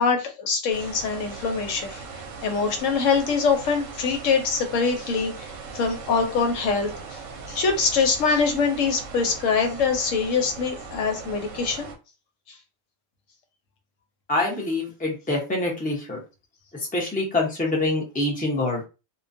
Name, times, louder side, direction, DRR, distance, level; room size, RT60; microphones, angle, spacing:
voice 1, 0.0-2.0 2.4-5.5 5.7-7.2 7.5-11.9, left 5 dB, 85° left, 5 dB, 1.0 m, -24 dB
sound 1, 0.7-12.0, right 4 dB, 80° right, 1.0 m, -39 dB
voice 2, 14.3-16.2 16.9-18.8, left 2 dB, 10° left, -2 dB, 0.6 m, -25 dB
2.4 x 2.2 x 2.5 m, 0.29 s
omnidirectional pair, 1.3 m